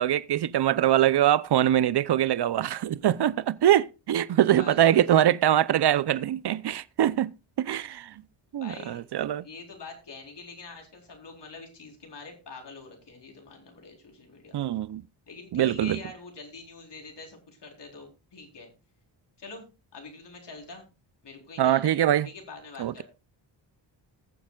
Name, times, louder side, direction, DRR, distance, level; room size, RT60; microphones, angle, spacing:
voice 1, 0.0-7.3 7.6-8.2 8.5-9.5 14.5-15.0 15.5-16.0 21.6-22.3 22.8-23.0, right 11 dB, 55° right, 0.7 m, -23 dB
voice 2, 4.6-5.1 8.5-9.0 9.4-14.6 15.3-18.7 19.4-19.6 19.9-20.8 21.2-22.0 22.2-23.0, left 3 dB, 60° left, 4.2 m, -45 dB
20.0 x 7.3 x 2.4 m
cardioid pair, 60°, 48 cm